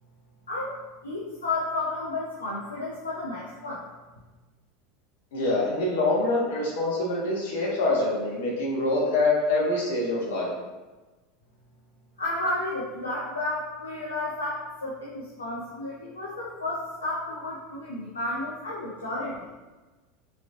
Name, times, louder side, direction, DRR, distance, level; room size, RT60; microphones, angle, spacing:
voice 1, 1.0-3.9 12.2-19.5, left 2 dB, 75° left, -6 dB, 0.6 m, -32 dB
voice 2, 5.3-10.5, left 2 dB, 60° left, -4 dB, 1.4 m, -25 dB
5.6 x 3.5 x 2.5 m, 1.2 s
figure-of-eight pair, 80°, 0 cm